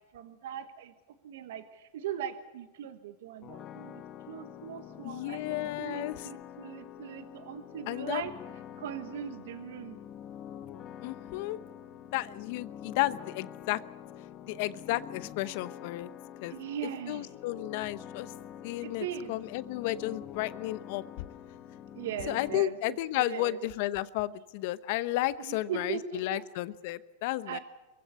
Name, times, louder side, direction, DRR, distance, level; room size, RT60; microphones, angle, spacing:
voice 1, 0.1-0.9 1.2-8.3 8.8-10.0 16.5-17.3 18.8-19.3 22.0-23.6 25.4-26.4 27.5-27.6, right 9 dB, 75° right, 9 dB, 1.3 m, -39 dB
sound 1, 3.4-22.6, left 10 dB, 35° left, 1.1 m, -46 dB
voice 2, 5.0-6.3 7.9-8.3 11.0-11.6 12.1-13.8 14.5-16.1 16.4-16.6 17.1-18.3 18.6-21.3 22.3-27.6, left 16 dB, 60° left, 16 dB, 0.9 m, -33 dB
24.5 x 15.5 x 8.3 m, 1.1 s
hypercardioid pair, 115°, 0 cm